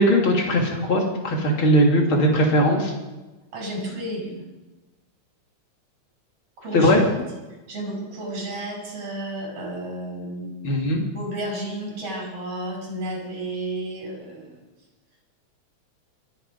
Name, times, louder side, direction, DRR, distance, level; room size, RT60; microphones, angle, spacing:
voice 1, 0.0-2.9 6.7-7.0 10.6-11.0, equal, 45° left, 0 dB, 3.4 m, -19 dB
voice 2, 3.5-4.4 6.6-7.0 7.7-10.5 11.1-14.6, right 1 dB, 50° right, 0 dB, 6.2 m, -32 dB
24.5 x 9.2 x 5.4 m, 1.1 s
omnidirectional pair, 3.4 m